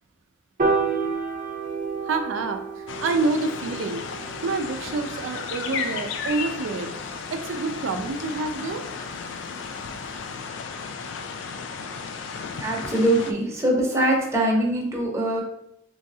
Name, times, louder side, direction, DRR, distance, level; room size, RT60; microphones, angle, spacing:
Piano, 0.6-6.9, right 4 dB, 45° right, 0.7 m, -31 dB
voice 1, 2.0-4.0 4.4-6.9 7.3-8.8, right 3 dB, 80° right, 5 dB, 0.4 m, -27 dB
Rain in small eucalyptus forest, 2.9-13.3, left 5 dB, 70° left, 0.4 m, -34 dB
voice 2, 12.6-15.4, right 1 dB, 15° right, -3 dB, 0.8 m, -22 dB
3.5 x 3.1 x 2.6 m, 0.78 s
head